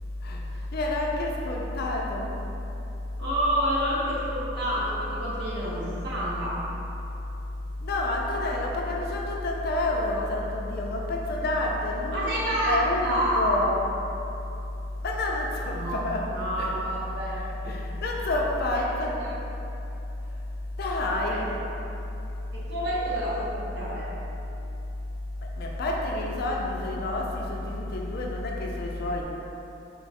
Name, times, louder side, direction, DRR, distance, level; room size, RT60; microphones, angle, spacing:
voice 1, 0.7-2.3 7.8-12.3 12.7-13.8 15.0-16.3 16.6-16.7 17.6-19.2 20.8-21.6 25.6-29.2, left 2 dB, 55° left, -1 dB, 0.4 m, -28 dB
voice 2, 3.2-6.6 12.1-13.6 15.7-17.5 18.7-19.3 21.3-21.4 22.5-24.1, equal, 60° right, -7 dB, 1.0 m, -29 dB
3.8 x 2.3 x 4.1 m, 3.0 s
head